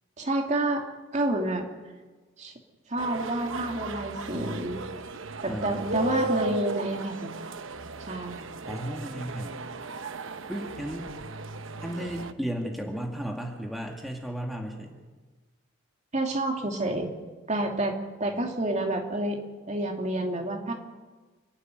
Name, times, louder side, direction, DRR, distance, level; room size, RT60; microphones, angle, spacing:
voice 1, 0.2-0.8 1.1-1.6 2.4-2.5 2.9-4.8 5.4-7.3 8.0-8.4 16.1-17.1 17.5-19.4 19.7-20.7, right 1 dB, 35° right, 2 dB, 2.8 m, -29 dB
sound 1, 3.0-12.3, right 2 dB, 75° right, 1.0 m, -35 dB
voice 2, 5.5-6.5 8.7-9.6 10.5-11.1 11.8-15.0, equal, ahead, 1 dB, 2.1 m, -34 dB
29.0 x 12.0 x 9.4 m, 1.3 s
head